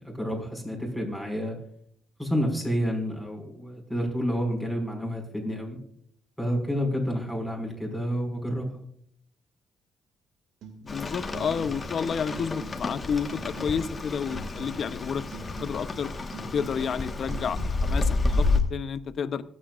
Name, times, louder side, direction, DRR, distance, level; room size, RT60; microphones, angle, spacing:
voice 1, 0.0-1.6 2.2-5.8 6.4-8.8, equal, 5° right, 1 dB, 5.7 m, -29 dB
sound 1, 10.6-10.9 11.3-12.0 12.3-13.0 13.3-14.0 14.3-15.0 15.3-16.0 16.3-17.0 17.3-18.0 18.3-18.6, right 5 dB, 85° right, 2.4 m, -45 dB
voice 2, 10.8-15.3 15.6-16.1 16.5-19.4, left 6 dB, 55° left, 12 dB, 0.8 m, -30 dB
Rain, 10.9-18.6, left 3 dB, 30° left, 1.5 m, -30 dB
25.5 x 8.5 x 2.5 m, 0.66 s
cardioid pair, 90°, 0 cm